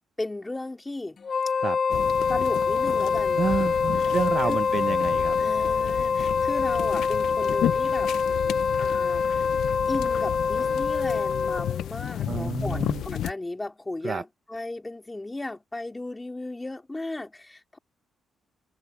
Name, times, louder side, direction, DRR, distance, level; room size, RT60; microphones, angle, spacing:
voice 1, 0.2-1.2 2.3-3.4 4.5-4.6 5.4-8.1 8.7-9.5 9.9-17.8, left 2 dB, 10° left, 3.0 m, -35 dB
Wind instrument woodwind instrument, 1.2-11.8, left 5 dB, 35° left, 1.3 m, -25 dB
sound 1, 1.9-13.3, left 11 dB, 75° left, 0.5 m, -33 dB
voice 2, 3.4-5.4 12.3-13.0 14.0-14.2, right 6 dB, 40° right, 0.7 m, -29 dB
cardioid pair, 150°, 0 cm